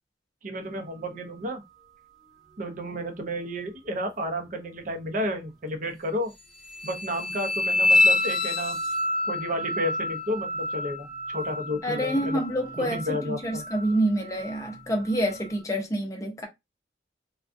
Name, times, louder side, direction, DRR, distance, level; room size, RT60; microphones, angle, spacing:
voice 1, 0.4-1.6 2.6-6.3 6.8-8.8 9.3-12.4 12.8-13.6, equal, 45° right, 0.7 m, -32 dB
sound 1, 6.7-15.6, left 2 dB, ahead, 1.0 m, -28 dB
voice 2, 11.8-16.5, right 1 dB, 20° left, 0.7 m, -27 dB
3.5 x 2.3 x 2.5 m
head